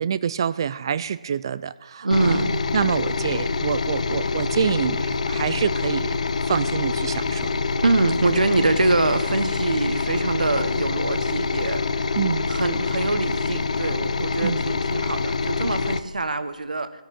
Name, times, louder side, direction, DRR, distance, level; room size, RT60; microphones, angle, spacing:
voice 1, 0.0-2.4 2.7-6.1 6.5-7.5 12.2-12.4 14.4-14.6, right 7 dB, 35° right, 16 dB, 0.4 m, -26 dB
voice 2, 2.0-2.6 7.8-12.1 12.5-16.9, right 3 dB, 85° right, 11 dB, 1.2 m, -24 dB
sound 1, 2.1-16.0, left 4 dB, 60° left, 0.7 m, -25 dB
sound 2, 3.2-12.5, right 1 dB, ahead, 1.4 m, -44 dB
14.0 x 6.7 x 8.9 m, 1.2 s
hypercardioid pair, 165°, 4 cm